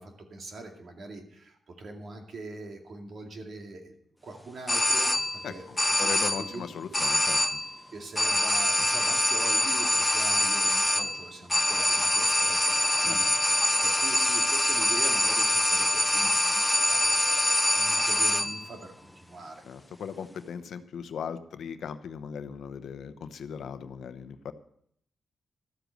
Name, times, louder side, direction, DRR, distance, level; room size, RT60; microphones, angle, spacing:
voice 1, 0.0-3.9 4.2-7.0 7.9-19.6, right 2 dB, 60° right, 3 dB, 2.3 m, -43 dB
sound 1, 4.7-5.5 5.8-6.6 6.9-7.8 8.2-18.7, left 1 dB, 10° left, 0.7 m, -25 dB
voice 2, 6.0-7.4 8.8-8.9 13.0-13.4 19.6-24.5, left 7 dB, 80° left, 11 dB, 0.8 m, -38 dB
13.0 x 8.0 x 6.5 m, 0.68 s
cardioid pair, 85°, 0 cm